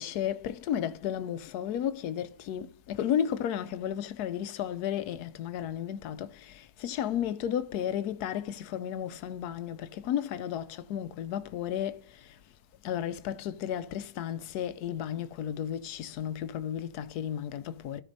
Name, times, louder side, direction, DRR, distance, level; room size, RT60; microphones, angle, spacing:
voice 1, 0.0-12.4 12.8-18.0, left 10 dB, 85° left, 1.1 m, -33 dB
14.5 x 5.1 x 2.7 m
omnidirectional pair, 1.7 m